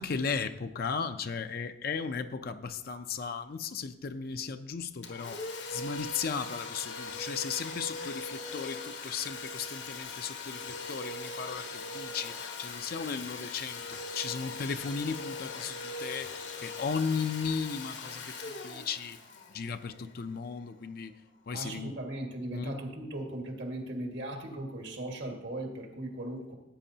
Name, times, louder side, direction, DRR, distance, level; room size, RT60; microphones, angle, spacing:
voice 1, 0.0-5.4 5.7-19.2 19.5-21.1 21.5-22.0 22.5-22.8, left 5 dB, 55° left, 0.5 m, -36 dB
Domestic sounds home sounds, 5.0-20.5, left 3 dB, 80° left, 1.4 m, -40 dB
voice 2, 21.5-26.5, right 1 dB, 80° right, 1.8 m, -38 dB
15.5 x 9.2 x 2.8 m
head